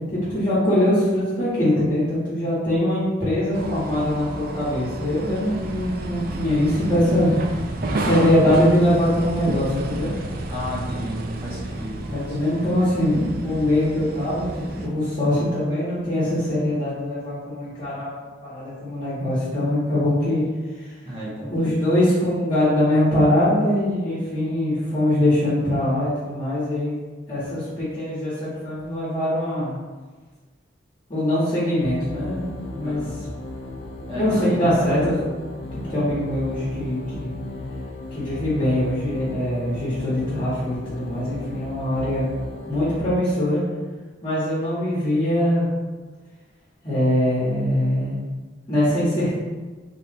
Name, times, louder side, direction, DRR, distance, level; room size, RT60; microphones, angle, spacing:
voice 1, 0.1-7.3 8.0-10.1 12.1-20.4 20.8-20.9 21.5-26.9 27.3-29.8 31.1-32.4 32.7-33.0 34.1-35.2 35.7-37.3 38.1-42.3 42.7-43.6 44.2-45.7 46.8-48.1 48.7-49.3, left 1 dB, 30° left, -11 dB, 1.3 m, -22 dB
sound 1, 3.5-14.9, right 2 dB, 50° right, 0.4 m, -31 dB
voice 2, 7.9-8.6 10.5-12.6 21.1-22.0 32.8-33.1 34.1-34.8 35.8-36.1, left 1 dB, 30° right, -7 dB, 1.0 m, -34 dB
sound 2, 31.8-43.0, left 2 dB, 65° left, 0.6 m, -35 dB
3.5 x 2.5 x 4.2 m, 1.3 s
head